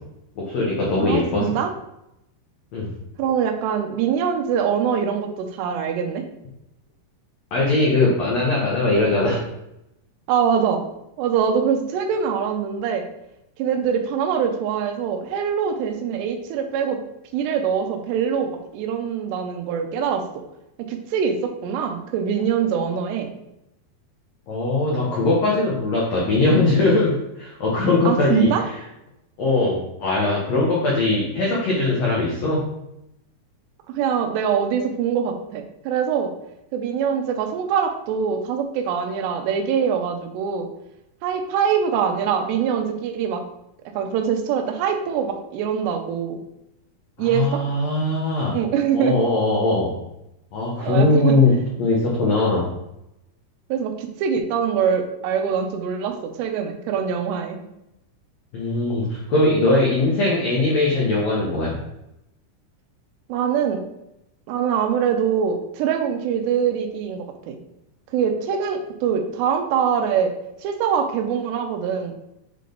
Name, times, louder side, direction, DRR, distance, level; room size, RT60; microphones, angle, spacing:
voice 1, 0.4-1.5 2.7-2.9 7.5-9.4 24.5-28.5 29.4-32.7 47.2-48.6 48.9-50.0 50.5-51.5 51.8-52.7 58.5-61.8, left 2 dB, 85° left, -4 dB, 1.4 m, -20 dB
voice 2, 1.0-1.7 3.2-6.2 10.3-10.9 11.2-13.1 13.6-17.0 17.3-20.4 20.8-23.3 28.1-28.7 33.9-36.3 36.7-40.7 41.2-43.4 44.0-46.4 47.2-47.6 48.5-49.2 50.8-51.4 53.7-57.6 63.3-63.8 64.5-67.6 68.1-70.4 70.6-72.1, right 7 dB, 85° right, 5 dB, 2.9 m, -23 dB
7.5 x 3.4 x 3.9 m, 0.84 s
omnidirectional pair, 4.8 m